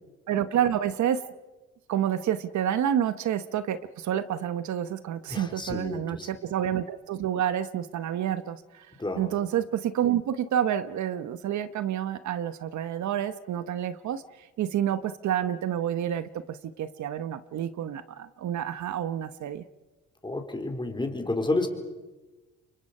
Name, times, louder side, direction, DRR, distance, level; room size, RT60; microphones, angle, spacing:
voice 1, 0.3-1.2 1.9-8.9 9.2-14.2 14.6-19.6, right 10 dB, 70° right, 12 dB, 1.1 m, -29 dB
voice 2, 5.3-6.3 9.0-9.3 20.2-21.7, left 2 dB, 15° left, 4 dB, 3.9 m, -30 dB
29.0 x 24.0 x 5.6 m, 1.2 s
cardioid pair, 90°, 30 cm